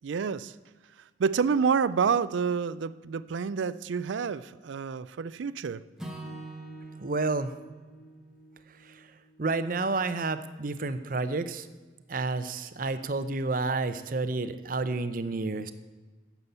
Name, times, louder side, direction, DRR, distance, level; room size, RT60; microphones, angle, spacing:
voice 1, 0.0-0.5 1.2-5.8, right 6 dB, 90° right, 18 dB, 0.4 m, -28 dB
Acoustic guitar / Strum, 6.0-10.3, right 2 dB, 5° right, 1.3 m, -45 dB
voice 2, 7.0-7.5 8.8-9.1 9.4-11.7 12.1-15.7, right 3 dB, 50° right, 12 dB, 0.6 m, -30 dB
9.7 x 7.1 x 8.1 m, 1.3 s
head